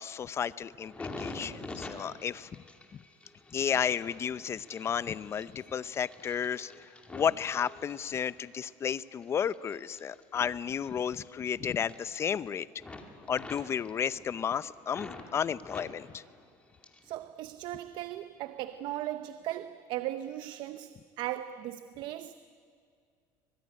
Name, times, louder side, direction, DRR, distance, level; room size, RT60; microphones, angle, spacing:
voice 1, 0.0-2.5 3.5-6.7 7.1-12.7 13.3-16.2, left 8 dB, 30° left, 0.7 m, -32 dB
sound 1, 0.8-8.4 8.9-11.5 11.7-12.5 12.8-15.3 15.6-17.2 17.4-18.2 18.7-18.9, left 2 dB, 15° left, 2.5 m, -47 dB
voice 2, 17.0-22.3, right 13 dB, 65° right, 0.8 m, -37 dB
25.0 x 21.0 x 9.9 m
cardioid pair, 130°, 8 cm